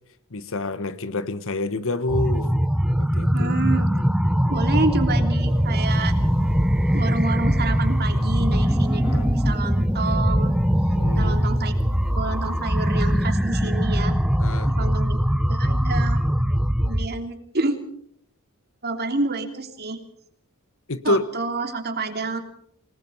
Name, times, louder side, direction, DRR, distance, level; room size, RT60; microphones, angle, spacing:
voice 1, 0.3-2.5 3.0-3.5 9.0-9.3 11.0-11.5 14.4-14.7 20.9-21.3, left 2 dB, 65° left, 13 dB, 1.4 m, -27 dB
sound 1, 2.1-17.1, equal, 5° right, 0.9 m, -21 dB
voice 2, 3.3-4.0 4.5-6.1 6.9-10.5 11.2-11.7 12.2-14.1 14.6-15.2 15.5-16.2 16.8-17.8 18.8-20.0 21.0-22.4, right 3 dB, 45° right, 5 dB, 3.1 m, -28 dB
sound 2, 5.3-13.4, right 1 dB, 30° right, 2.7 m, -43 dB
27.5 x 19.0 x 5.7 m, 0.67 s
head